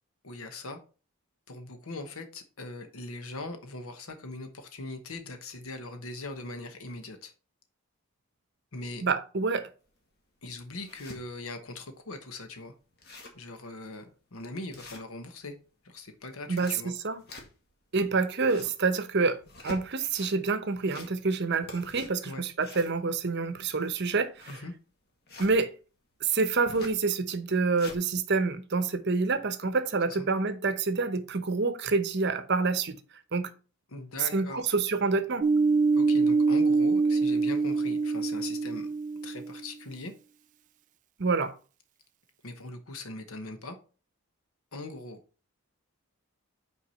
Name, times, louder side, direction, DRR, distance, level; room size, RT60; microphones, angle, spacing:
voice 1, 0.2-0.8 1.5-7.3 8.7-9.0 10.4-12.7 13.3-15.5 15.8-16.9 22.2-22.4 24.5-24.7 30.1-30.2 33.9-34.6 35.9-38.9 39.2-40.1 42.4-43.8 44.7-45.2, left 2 dB, 70° left, 1.0 m, -40 dB
voice 2, 9.0-9.7 16.5-17.2 17.9-24.5 25.4-25.7 26.2-33.0 33.3-33.5 34.3-35.5 41.2-41.5, right 4 dB, 50° right, 0.8 m, -27 dB
sound 1, 9.9-10.0 10.5-11.2 11.7-11.8 12.1-12.2 12.6-12.7 12.9-13.5 13.9-14.0 14.7-15.5 16.3-17.8 18.2-18.8 19.4-20.3 20.7-21.4 21.6-25.5 26.7-27.0 27.5-28.0, left 2 dB, 45° left, 1.8 m, -46 dB
sound 2, 35.4-39.7, right 4 dB, 35° right, 0.3 m, -25 dB
5.8 x 4.7 x 5.6 m
head